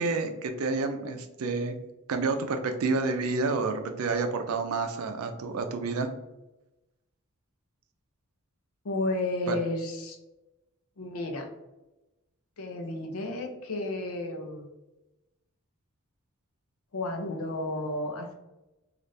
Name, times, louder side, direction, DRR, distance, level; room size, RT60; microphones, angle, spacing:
voice 1, 0.0-1.7 2.1-6.1 9.5-9.6, right 3 dB, 85° right, 6 dB, 0.4 m, -29 dB
voice 2, 8.8-10.2 11.0-11.5 12.6-14.6 16.9-18.3, left 2 dB, 85° left, 4 dB, 0.6 m, -32 dB
3.2 x 2.4 x 2.6 m, 1.0 s
head